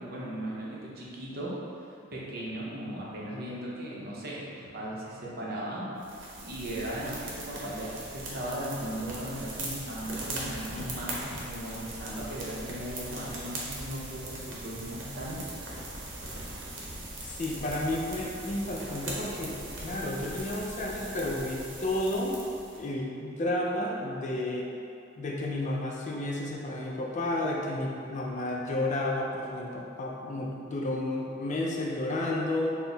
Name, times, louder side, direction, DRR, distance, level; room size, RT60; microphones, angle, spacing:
voice 1, 0.0-1.5 2.1-5.9 6.3-15.5, right 1 dB, 55° right, -5 dB, 0.7 m, -37 dB
sound 1, 6.0-22.8, right 2 dB, 85° right, 0.8 m, -40 dB
voice 2, 17.2-22.4 22.8-24.7 25.2-32.7, left 1 dB, 40° left, -2 dB, 0.4 m, -31 dB
4.4 x 2.1 x 3.9 m, 2.6 s
head